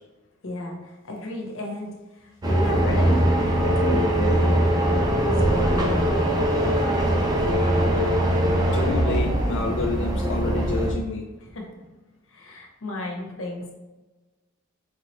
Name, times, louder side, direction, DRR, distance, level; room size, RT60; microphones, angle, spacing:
voice 1, 0.4-6.4 11.4-11.8 12.3-13.7, left 2 dB, 90° left, 1 dB, 1.0 m, -34 dB
sound 1, 2.4-10.9, right 1 dB, 20° right, 0.6 m, -21 dB
voice 2, 7.4-11.3, left 3 dB, 65° left, 1 dB, 0.4 m, -31 dB
4.7 x 3.0 x 3.1 m, 1.1 s
head